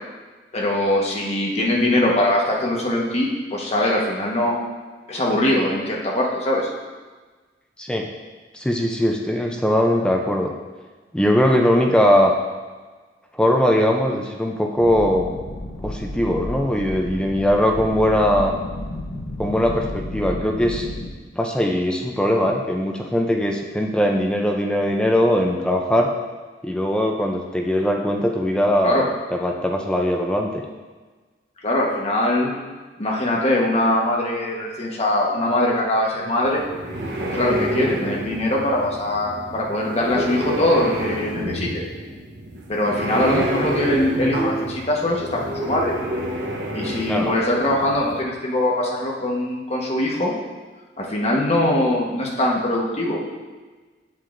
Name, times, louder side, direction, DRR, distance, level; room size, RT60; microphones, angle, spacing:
voice 1, 0.5-4.6 5.1-6.7 28.8-29.0 31.6-32.5 33.0-36.6 37.3-41.8 42.7-45.9 46.7-50.3 51.0-53.4, left 1 dB, 35° left, -2 dB, 1.2 m, -22 dB
voice 2, 8.5-10.5 11.1-12.3 13.3-15.3 15.8-18.5 19.4-20.9 21.3-26.1 26.6-30.6 43.1-43.4 47.1-47.3, equal, 5° left, 1 dB, 0.5 m, -20 dB
sound 1, 14.8-21.1, left 1 dB, 60° left, 0.8 m, -32 dB
sound 2, 36.4-48.2, right 1 dB, 65° right, 1.0 m, -29 dB
8.3 x 7.5 x 2.6 m, 1.3 s
head